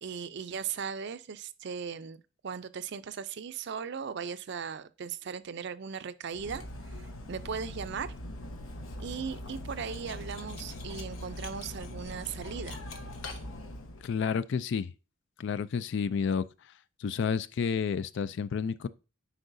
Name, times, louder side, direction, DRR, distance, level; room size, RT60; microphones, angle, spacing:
voice 1, 0.0-8.1 9.0-12.8, right 6 dB, 55° right, 0.4 m, -38 dB
Cutlery silverware, 6.3-14.1, left 1 dB, 75° left, 1.1 m, -41 dB
voice 2, 14.0-14.9 15.4-16.5 17.0-18.9, left 6 dB, 60° left, 0.3 m, -30 dB
9.9 x 4.7 x 2.6 m
head